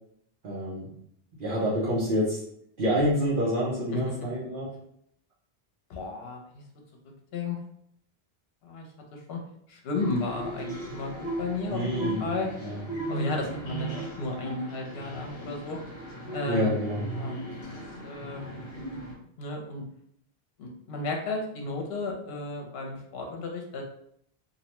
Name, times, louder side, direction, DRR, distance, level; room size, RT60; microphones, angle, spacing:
voice 1, 0.4-0.9 1.4-2.4 2.8-4.7 11.7-12.3 12.6-12.8 16.5-17.0, equal, 60° right, -7 dB, 0.9 m, -27 dB
voice 2, 5.9-6.6 7.3-7.6 8.6-8.9 9.1-9.4 9.7-12.5 13.1-15.8 16.3-16.7 17.1-18.4 19.4-19.8 20.6-23.8, left 3 dB, 75° left, 1 dB, 0.8 m, -33 dB
sound 1, 10.0-19.1, right 1 dB, 55° left, 1.0 m, -37 dB
2.6 x 2.1 x 2.9 m, 0.69 s
omnidirectional pair, 1.0 m